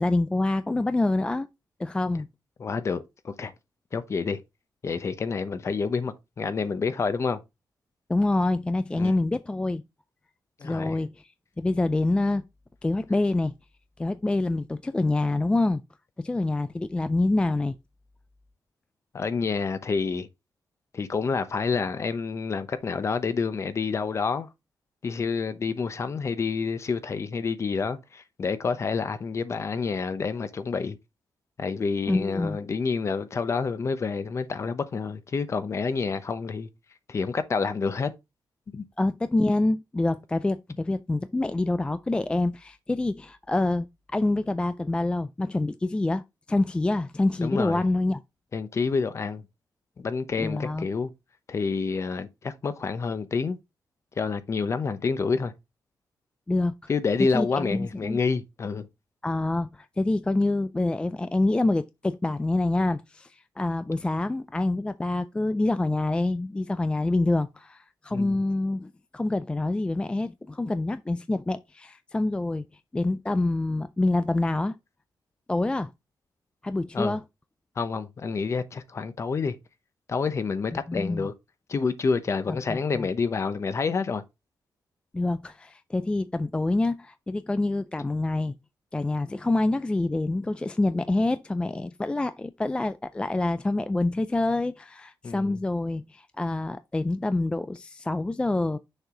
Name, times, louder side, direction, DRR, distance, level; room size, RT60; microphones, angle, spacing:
voice 1, 0.0-1.5 1.8-2.3 8.1-9.8 10.6-11.1 11.6-12.4 12.8-13.5 14.0-15.8 16.2-17.8 32.1-32.6 39.0-46.2 46.5-48.2 50.4-50.9 56.5-56.9 57.3-58.2 59.2-72.6 72.9-74.8 75.5-75.9 76.6-77.2 80.7-81.3 82.5-83.1 85.1-88.5 88.9-98.8, left 2 dB, 15° left, 0.3 m, -26 dB
voice 2, 2.6-3.5 3.9-4.4 4.8-7.4 8.9-9.1 10.6-11.0 19.1-20.3 20.9-24.5 25.0-31.0 31.6-36.7 37.1-38.1 38.7-38.8 47.4-47.8 48.5-49.4 50.0-51.1 51.5-53.6 54.2-55.5 56.9-58.9 68.1-68.4 76.9-77.2 77.8-79.6 80.1-81.3 81.7-84.2 95.2-95.6, left 5 dB, 40° left, 0.8 m, -28 dB
6.5 x 4.7 x 3.8 m
wide cardioid pair, 125°, 7 cm